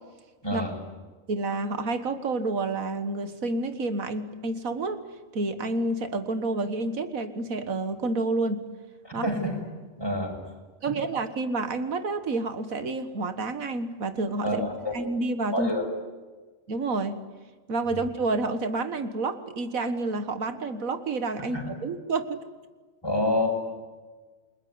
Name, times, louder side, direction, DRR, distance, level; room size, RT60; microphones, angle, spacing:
voice 1, 0.4-0.7 9.0-9.6 10.0-10.4 14.4-15.0 15.5-15.8 17.9-18.0 21.4-21.7 23.0-23.5, left 1 dB, 15° left, 1 dB, 6.3 m, -27 dB
voice 2, 1.3-5.0 5.3-8.7 9.1-9.3 10.8-14.6 14.9-15.7 16.7-17.2 17.7-22.4, right 3 dB, 85° right, 10 dB, 2.0 m, -29 dB
29.0 x 21.0 x 9.7 m, 1.4 s
omnidirectional pair, 1.4 m